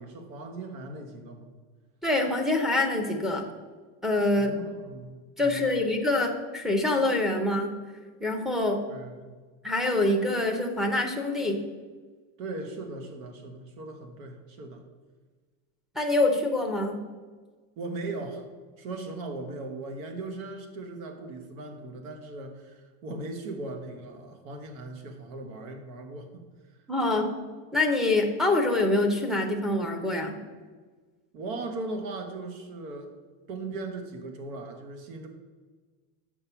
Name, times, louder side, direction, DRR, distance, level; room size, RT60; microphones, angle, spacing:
voice 1, 0.0-1.5 4.3-5.9 8.9-9.3 12.4-14.9 17.8-18.4 18.8-26.4 27.0-27.1 31.3-33.1 33.5-35.3, right 2 dB, 90° right, 6 dB, 1.6 m, -38 dB
voice 2, 2.0-3.4 4.0-4.5 5.4-7.7 8.2-8.8 9.6-11.6 16.0-17.0 26.9-27.3 27.7-30.4, left 2 dB, ahead, 2 dB, 0.5 m, -25 dB
6.7 x 5.3 x 7.2 m, 1.4 s
cardioid pair, 170°, 41 cm